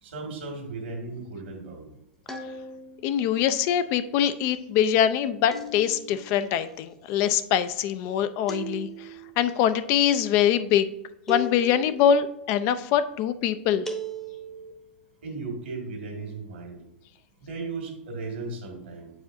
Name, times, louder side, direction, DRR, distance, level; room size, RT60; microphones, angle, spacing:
voice 1, 0.0-1.9 15.2-16.8 17.4-19.1, right 3 dB, 75° right, 2 dB, 2.0 m, -36 dB
sound 1, 2.3-3.1 5.5-6.3 8.5-9.3 11.3-12.1 13.9-14.7, equal, 5° left, 0.8 m, -37 dB
voice 2, 3.0-9.1 9.4-10.9 11.3-13.9, left 9 dB, 45° left, 12 dB, 0.4 m, -23 dB
8.2 x 4.8 x 2.6 m, 0.90 s
hypercardioid pair, 105°, 6 cm